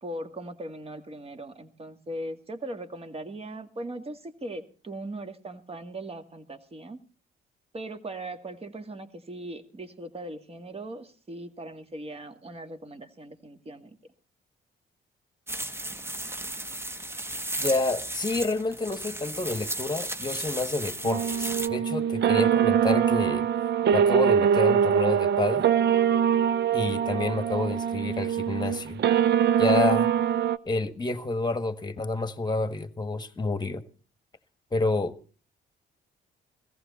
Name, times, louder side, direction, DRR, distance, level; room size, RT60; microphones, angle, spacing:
voice 1, 0.0-7.0 7.7-14.0, right 1 dB, 30° right, 7 dB, 1.9 m, -39 dB
sound 1, 15.5-21.7, right 1 dB, 10° right, 0.9 m, -35 dB
voice 2, 17.6-23.5 23.9-25.6 26.7-29.0 29.6-30.1 30.6-33.8 34.7-35.1, left 3 dB, 20° left, 11 dB, 1.4 m, -29 dB
sound 2, 21.0-30.6, right 8 dB, 60° right, 0.6 m, -23 dB
17.0 x 14.5 x 4.2 m, 0.37 s
cardioid pair, 90°, 20 cm